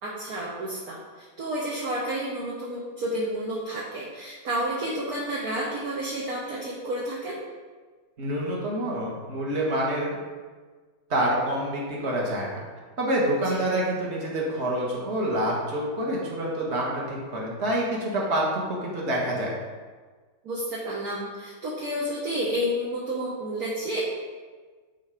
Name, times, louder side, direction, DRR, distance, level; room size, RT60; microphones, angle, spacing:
voice 1, 0.0-7.4 13.4-13.6 20.4-24.0, right 1 dB, 55° right, -5 dB, 1.5 m, -30 dB
voice 2, 8.2-10.2 11.1-12.6 13.0-19.5, right 1 dB, 35° right, -4 dB, 1.8 m, -27 dB
10.5 x 3.9 x 5.1 m, 1.4 s
omnidirectional pair, 2.2 m